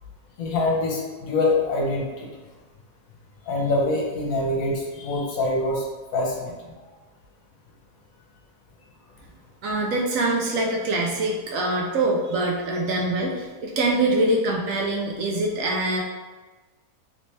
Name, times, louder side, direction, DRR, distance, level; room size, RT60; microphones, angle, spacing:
voice 1, 0.4-2.3 3.5-5.8 6.1-6.5, left 2 dB, 70° left, -2 dB, 1.1 m, -24 dB
voice 2, 9.6-16.0, right 2 dB, 70° right, -1 dB, 0.9 m, -24 dB
3.2 x 2.8 x 3.1 m, 1.3 s
omnidirectional pair, 1.6 m